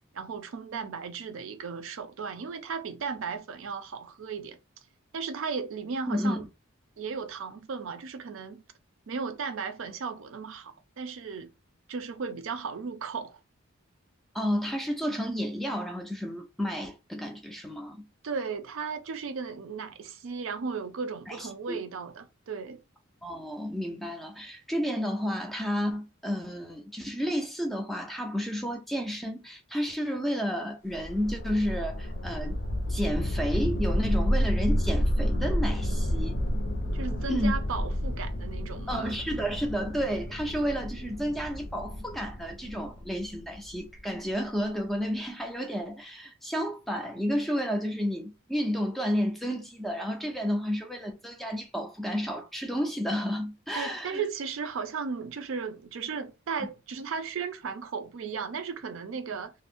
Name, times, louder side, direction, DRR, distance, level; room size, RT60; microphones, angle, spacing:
voice 1, 0.1-4.6 5.1-6.5 7.0-8.6 9.1-11.5 11.9-13.4 18.2-22.8 36.9-39.1 53.7-59.5, right 5 dB, 75° right, 0.4 m, -35 dB
voice 2, 6.1-6.4 14.3-18.1 21.3-21.8 23.2-32.6 32.9-36.4 37.3-37.5 38.9-54.2, equal, ahead, 0.3 m, -31 dB
sound 1, 30.9-44.0, equal, 60° left, 0.5 m, -30 dB
2.5 x 2.0 x 3.4 m
head